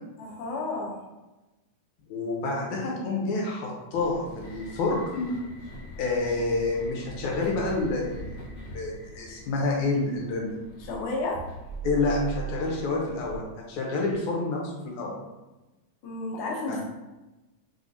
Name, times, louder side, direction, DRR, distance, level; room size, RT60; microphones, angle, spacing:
voice 1, 0.2-1.0 10.8-11.4 16.0-16.8, left 2 dB, 65° left, -1 dB, 1.4 m, -31 dB
voice 2, 2.1-5.3 6.0-10.5 11.8-15.2 16.7-16.8, left 3 dB, 80° left, -2 dB, 2.3 m, -28 dB
sound 1, 3.9-13.4, right 4 dB, 50° left, 1.4 m, -41 dB
4.9 x 3.4 x 2.8 m, 1.1 s
omnidirectional pair, 3.3 m